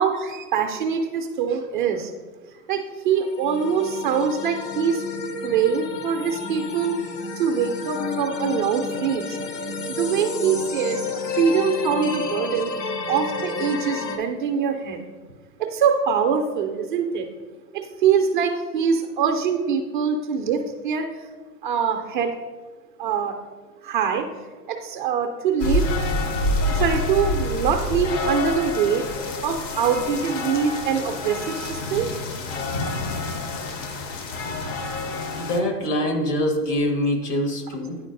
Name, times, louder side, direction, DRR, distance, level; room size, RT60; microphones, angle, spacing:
voice 1, 0.0-2.1 2.7-5.0 5.4-7.0 7.4-9.4 10.0-12.7 13.1-15.0 15.6-17.3 17.7-21.1 21.6-22.3 23.0-23.4 23.8-24.3 24.7-25.9 26.7-29.0 29.4-32.1 32.8-32.9, right 7 dB, 35° right, 4 dB, 0.4 m, -23 dB
sound 1, 3.1-14.2, left 4 dB, 90° left, 0.9 m, -31 dB
sound 2, 25.6-35.6, left 2 dB, 50° left, 0.8 m, -27 dB
voice 2, 35.4-38.0, left 1 dB, 70° left, 2 dB, 1.7 m, -24 dB
9.8 x 3.9 x 2.5 m, 1.4 s
hypercardioid pair, 115°, 48 cm